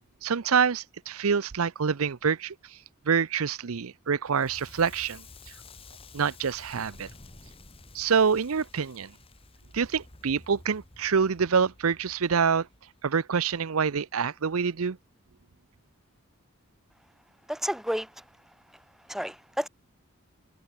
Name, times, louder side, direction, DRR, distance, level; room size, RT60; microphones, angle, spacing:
voice 1, 0.2-2.5 3.1-5.2 6.1-7.1 7.9-9.1 9.7-12.7 13.0-15.0, right 6 dB, 85° right, 0.6 m, -26 dB
Crackle, 4.2-13.2, left 3 dB, 25° left, 2.2 m, -51 dB
voice 2, 17.5-18.2 19.1-19.7, equal, ahead, 0.6 m, -31 dB
head